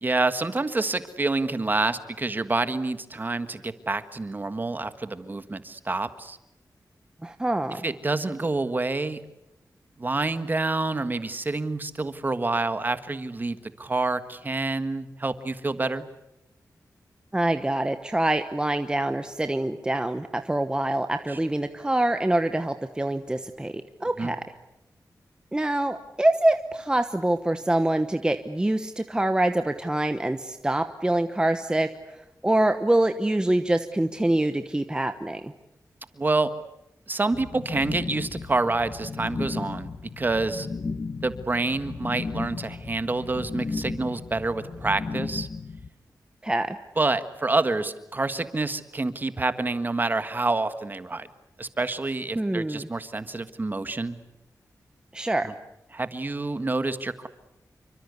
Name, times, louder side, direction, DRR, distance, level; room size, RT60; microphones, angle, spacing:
voice 1, 0.0-6.4 7.7-9.2 10.0-16.0 21.3-21.4 24.2-24.3 36.2-36.5 37.1-39.9 40.2-40.7 41.2-45.5 47.0-51.3 51.6-54.2 55.4-55.5 55.9-57.3, right 3 dB, 30° right, 11 dB, 1.5 m, -27 dB
voice 2, 7.2-7.8 17.3-24.4 25.5-35.5 46.4-46.8 52.3-52.9 55.1-55.5, right 1 dB, 15° right, 8 dB, 1.0 m, -25 dB
sound 1, 37.3-45.9, left 4 dB, 45° left, 1.3 m, -35 dB
28.0 x 24.5 x 8.3 m, 0.88 s
wide cardioid pair, 145°, 7 cm